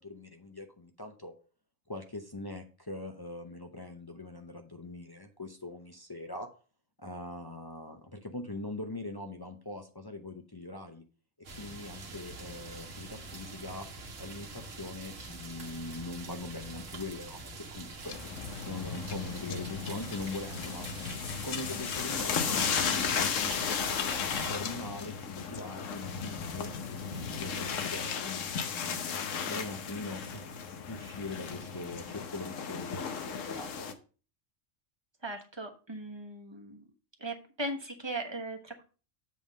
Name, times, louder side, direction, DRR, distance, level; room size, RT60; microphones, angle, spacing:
voice 1, 0.0-1.3 1.9-6.5 7.0-11.0 11.5-13.9 14.2-18.2 18.6-20.9 21.4-24.2 24.5-29.1 29.5-30.4 30.9-33.9, left 2 dB, 25° left, 3 dB, 0.6 m, -42 dB
sound 1, 11.4-24.5, right 2 dB, 75° right, 1.6 m, -45 dB
sound 2, 18.0-33.9, left 6 dB, 80° left, 1.2 m, -35 dB
voice 2, 35.2-36.8 37.2-38.8, right 1 dB, 20° right, 3 dB, 1.1 m, -38 dB
7.8 x 3.6 x 6.3 m, 0.37 s
omnidirectional pair, 1.3 m